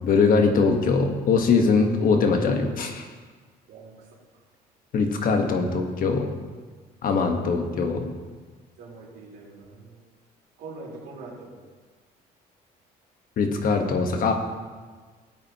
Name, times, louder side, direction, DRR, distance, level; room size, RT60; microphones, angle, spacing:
voice 1, 0.0-3.0 4.9-6.3 7.0-8.1 13.4-14.3, left 4 dB, 55° left, 4 dB, 1.4 m, -22 dB
voice 2, 3.7-4.2 7.4-7.6 8.8-10.0 10.6-11.5, right 3 dB, 85° right, -4 dB, 3.6 m, -43 dB
17.0 x 8.7 x 3.0 m, 1.4 s
cardioid pair, 110°, 17 cm